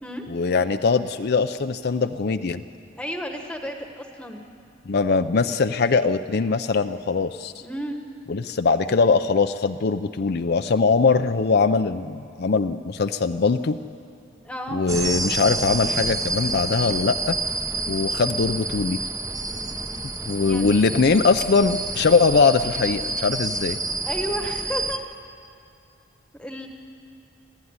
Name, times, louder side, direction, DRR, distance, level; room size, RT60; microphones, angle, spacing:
voice 1, 0.3-2.6 4.9-7.5 8.3-13.8 14.7-17.4 17.9-19.0 20.2-23.8, left 4 dB, 55° left, 8 dB, 0.5 m, -21 dB
voice 2, 3.0-4.5 7.6-8.0 14.4-14.8 20.4-20.7 24.0-25.0 26.4-26.7, equal, 5° left, 3 dB, 1.3 m, -32 dB
sound 1, 14.9-25.0, right 3 dB, 15° right, 0.9 m, -28 dB
26.5 x 15.5 x 9.7 m, 2.5 s
head